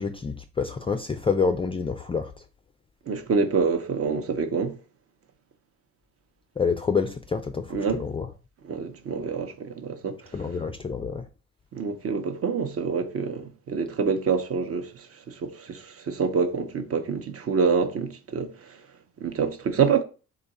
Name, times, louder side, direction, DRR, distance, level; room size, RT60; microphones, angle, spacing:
voice 1, 0.0-2.3 6.6-8.3 10.3-11.2, left 5 dB, 20° left, 0.3 m, -27 dB
voice 2, 3.1-4.8 7.7-8.0 8.6-10.2 11.7-14.9 15.3-18.5 19.2-20.0, right 5 dB, 50° right, 0.8 m, -26 dB
3.8 x 2.4 x 4.1 m
cardioid pair, 90°, 30 cm